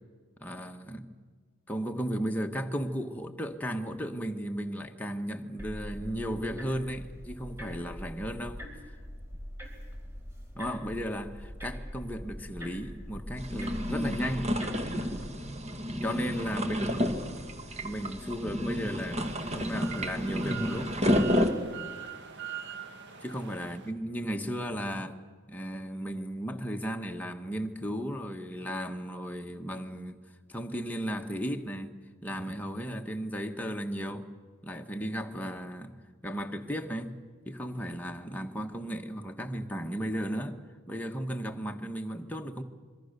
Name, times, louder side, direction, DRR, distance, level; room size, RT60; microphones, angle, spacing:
voice 1, 0.4-1.1 1.7-8.6 10.6-14.6 16.0-17.5 17.8-20.9 23.2-25.2 25.5-30.2 30.5-31.9 32.2-34.3 34.6-36.0 36.2-37.1 37.4-40.6 40.9-42.6, equal, 10° left, 1.2 m, -35 dB
sound 1, 5.6-15.5, equal, 15° right, 4.2 m, -43 dB
sound 2, 13.4-21.5, equal, 35° right, 2.0 m, -30 dB
sound 3, 18.7-23.9, right 8 dB, 60° right, 2.1 m, -43 dB
26.5 x 22.5 x 6.7 m
head